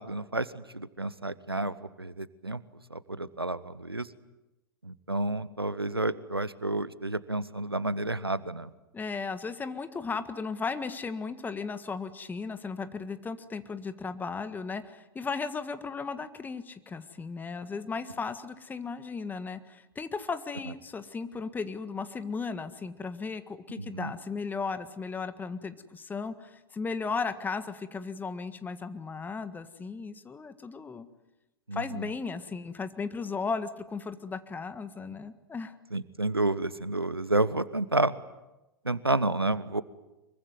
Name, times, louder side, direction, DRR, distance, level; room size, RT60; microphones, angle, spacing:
voice 1, 0.0-2.6 2.9-4.1 4.8-8.7 23.9-24.1 31.7-32.1 35.9-38.1 38.8-39.8, right 2 dB, 90° right, 18 dB, 1.0 m, -30 dB
voice 2, 8.9-31.1 31.7-35.8, left 4 dB, 15° left, 11 dB, 1.7 m, -36 dB
24.5 x 23.0 x 9.6 m, 1.0 s
figure-of-eight pair, 95°, 12 cm